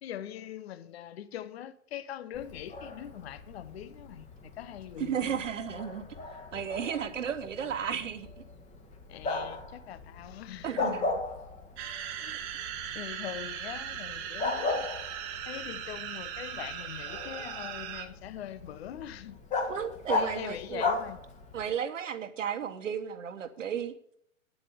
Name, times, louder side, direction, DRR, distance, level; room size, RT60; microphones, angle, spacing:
voice 1, 0.0-5.4 9.1-11.0 12.2-12.4 12.9-14.9 15.5-19.4 20.1-21.2, left 11 dB, 50° left, 0.9 m, -42 dB
Bark, 2.3-21.7, left 3 dB, 15° left, 1.8 m, -37 dB
voice 2, 5.0-6.1 6.5-8.4 10.6-11.2 19.7-20.8 21.5-23.9, right 8 dB, 65° right, 1.4 m, -34 dB
sound 1, 11.8-18.1, right 9 dB, 30° right, 1.1 m, -39 dB
9.5 x 8.2 x 6.8 m
figure-of-eight pair, 110°, 41 cm